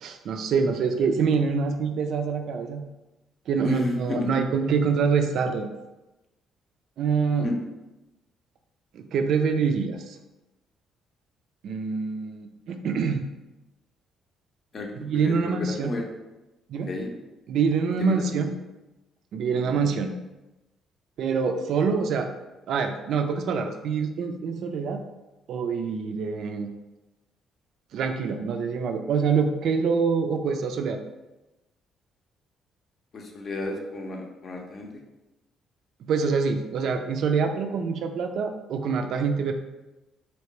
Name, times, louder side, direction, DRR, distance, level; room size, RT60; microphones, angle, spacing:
voice 1, 0.0-2.8 3.5-5.7 7.0-7.5 8.9-10.0 11.6-13.2 15.0-15.9 16.7-16.9 17.5-18.6 19.3-20.1 21.2-22.3 22.7-25.0 25.5-26.7 27.9-31.0 36.1-39.5, right 5 dB, 55° right, 5 dB, 0.3 m, -25 dB
voice 2, 3.6-4.3 7.4-7.5 14.7-16.0 16.9-17.1 18.0-18.5 19.6-19.9 33.1-34.9, left 2 dB, 45° left, 2 dB, 0.6 m, -32 dB
3.2 x 2.8 x 3.0 m, 1.0 s
figure-of-eight pair, 45°, 0 cm